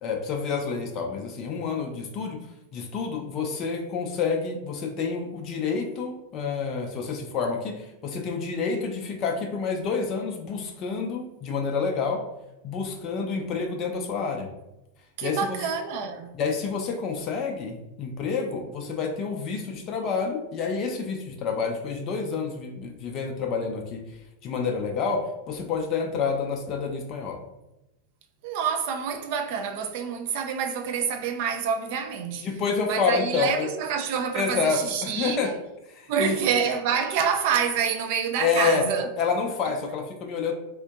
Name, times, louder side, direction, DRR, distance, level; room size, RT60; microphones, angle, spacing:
voice 1, 0.0-2.4 2.7-12.2 12.6-14.5 15.2-15.6 16.3-24.0 24.4-27.4 32.4-33.7 34.3-35.5 35.9-36.3 38.4-38.8 39.2-40.5, left 5 dB, 35° left, 0.4 m, -28 dB
voice 2, 15.2-16.3 28.4-32.5 32.9-35.5 36.1-39.1, right 7 dB, 50° right, 0.4 m, -27 dB
3.6 x 2.5 x 2.3 m
figure-of-eight pair, 90°, 0 cm